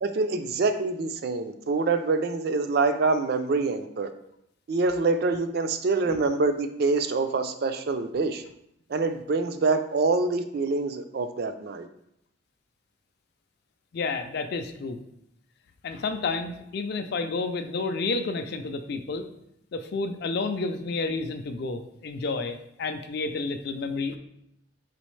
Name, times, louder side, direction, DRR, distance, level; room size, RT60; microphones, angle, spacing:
voice 1, 0.0-4.1 4.7-8.4 8.9-11.9, right 3 dB, 50° right, 9 dB, 0.3 m, -25 dB
voice 2, 13.9-15.0 15.8-19.3 19.7-24.2, left 3 dB, 50° left, 8 dB, 0.4 m, -30 dB
4.1 x 3.7 x 3.2 m, 0.77 s
head